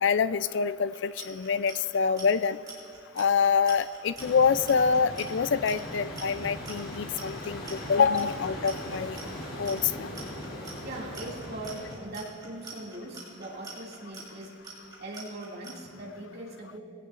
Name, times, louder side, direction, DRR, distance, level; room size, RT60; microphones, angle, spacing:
voice 1, 0.0-2.6 3.2-9.2 9.6-10.1, left 6 dB, 55° left, 14 dB, 0.3 m, -26 dB
Clock, 0.9-15.7, right 4 dB, 20° right, 3.2 m, -45 dB
sound 1, 4.2-11.9, left 1 dB, 75° left, 2.7 m, -39 dB
voice 2, 10.8-14.6 15.0-16.8, right 1 dB, 50° right, -3 dB, 2.3 m, -40 dB
20.5 x 17.0 x 2.5 m, 2.6 s
head